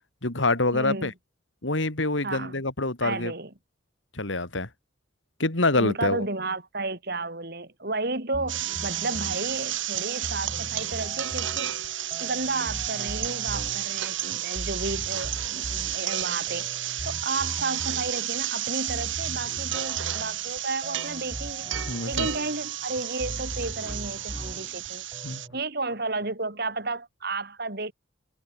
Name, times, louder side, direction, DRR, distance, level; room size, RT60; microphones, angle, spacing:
voice 1, 0.2-1.1 1.6-3.3 4.1-4.7 5.4-6.2 21.9-22.3 25.2-25.4, left 2 dB, 75° left, 3.0 m, -26 dB
voice 2, 0.7-1.1 2.2-2.6 3.0-3.5 5.7-11.7 12.2-16.7 17.1-21.7 22.1-25.0 25.5-27.9, right 3 dB, 55° right, 4.1 m, -32 dB
sound 1, 8.3-25.6, right 1 dB, 25° right, 2.8 m, -40 dB
sound 2, 8.5-25.5, right 12 dB, 75° right, 1.9 m, -32 dB
head